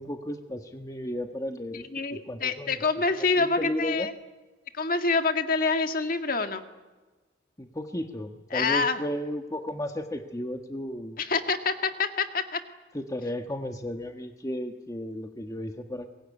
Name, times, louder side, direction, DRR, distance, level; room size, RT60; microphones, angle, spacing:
voice 1, 0.0-1.9 2.3-2.8 3.2-4.1 7.6-11.2 12.9-16.1, left 1 dB, 15° left, 5 dB, 1.3 m, -34 dB
voice 2, 1.9-4.1 4.7-6.6 8.5-9.0 11.2-12.6, left 4 dB, 45° left, 7 dB, 1.8 m, -26 dB
24.0 x 22.0 x 9.7 m, 1.2 s
head